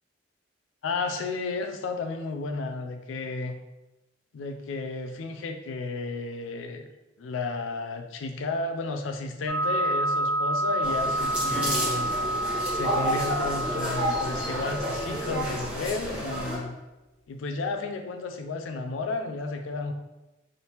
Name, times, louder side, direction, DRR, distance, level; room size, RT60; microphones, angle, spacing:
voice 1, 0.8-3.6 4.3-6.9 7.2-12.2 12.7-16.8 17.3-19.9, left 3 dB, 85° left, 6 dB, 0.4 m, -32 dB
sound 1, 9.5-15.6, right 1 dB, 75° right, 0.6 m, -29 dB
sound 2, 10.8-16.6, equal, 5° right, 1.0 m, -31 dB
Acoustic guitar / Strum, 11.5-15.8, left 1 dB, 40° left, 1.3 m, -40 dB
3.3 x 2.8 x 2.9 m, 1.0 s
head